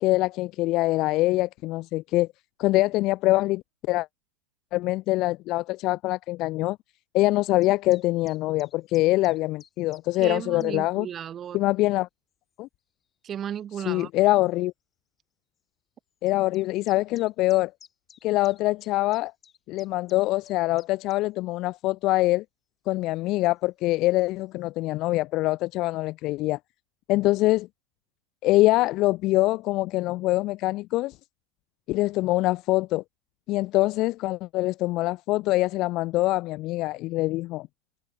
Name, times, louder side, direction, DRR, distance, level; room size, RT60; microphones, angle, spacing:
voice 1, 0.0-2.3 2.6-4.1 4.7-6.8 7.1-11.1 11.5-12.1 12.6-12.7 13.9-14.7 16.2-17.7 18.2-19.3 19.7-22.4 22.9-26.6 27.1-27.7 28.4-31.1 31.9-33.0 33.5-37.7, left 18 dB, 40° left, 0.5 m, -24 dB
sound 1, 7.6-10.7 11.4-11.6 12.5-12.6 13.7-13.8 14.1-14.2 14.5-14.6 16.3-21.2, left 7 dB, 20° left, 6.9 m, -54 dB
voice 2, 10.2-11.6 13.2-14.1, right 9 dB, 25° right, 5.2 m, -34 dB
figure-of-eight pair, 90°, 0 cm